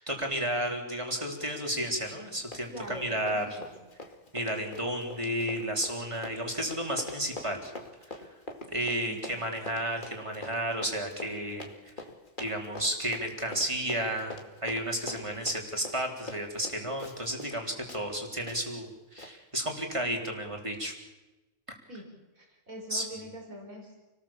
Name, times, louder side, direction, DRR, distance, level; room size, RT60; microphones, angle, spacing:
voice 1, 0.0-3.6 4.3-7.7 8.1-8.2 8.7-11.9 12.4-20.9 22.9-23.1, right 1 dB, 20° right, 1 dB, 4.0 m, -32 dB
Run, 2.0-2.3 2.5-17.6 17.9-18.0 18.5-18.6 19.2-19.3, left 2 dB, 35° left, 2.7 m, -44 dB
voice 2, 2.7-3.7 9.1-9.5 21.9-22.1 22.3-24.1, right 1 dB, 85° right, 2 dB, 5.3 m, -44 dB
29.5 x 19.5 x 7.4 m, 1.1 s
omnidirectional pair, 1.4 m